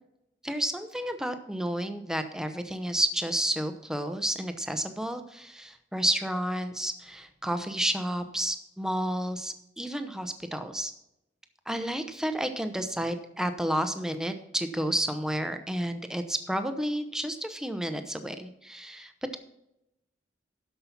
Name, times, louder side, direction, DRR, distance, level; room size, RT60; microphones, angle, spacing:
voice 1, 0.4-10.9 11.7-19.4, right 1 dB, 5° right, 8 dB, 0.8 m, -31 dB
12.5 x 5.6 x 5.8 m, 0.86 s
head